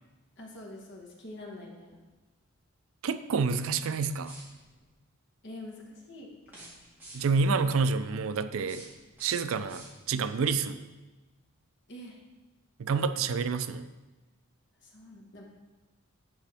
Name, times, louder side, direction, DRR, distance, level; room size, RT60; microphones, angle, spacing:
voice 1, 0.4-2.0 5.4-6.9 11.9-12.2 14.8-15.4, left 1 dB, 55° left, -1 dB, 1.3 m, -46 dB
voice 2, 3.0-4.3 7.1-8.8 9.2-10.8 12.8-13.8, right 5 dB, 70° right, 12 dB, 0.4 m, -28 dB
sound 1, 4.2-4.8 6.4-7.5 8.4-10.3, right 1 dB, 10° right, 2.0 m, -51 dB
9.0 x 5.1 x 3.5 m, 1.2 s
head